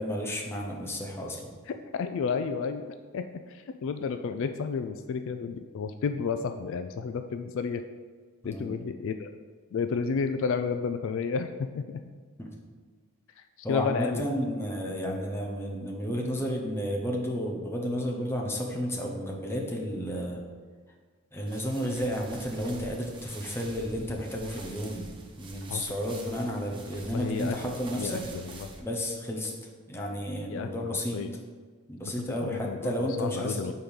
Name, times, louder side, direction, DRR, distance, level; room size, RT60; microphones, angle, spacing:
voice 1, 0.0-1.5 8.4-8.7 12.4-12.5 13.6-20.4 21.3-28.2 28.8-29.5 29.9-31.2 31.9-33.7, equal, 10° left, -1 dB, 0.8 m, -32 dB
voice 2, 1.9-2.9 3.1-7.8 8.4-9.3 9.7-12.0 13.4-14.3 25.7-25.9 27.1-28.7 30.5-31.3 32.0-32.1 32.4-33.7, left 5 dB, 60° left, 8 dB, 0.3 m, -32 dB
sound 1, 21.5-28.8, right 2 dB, 25° right, 0.7 m, -46 dB
5.0 x 4.5 x 5.3 m, 1.5 s
head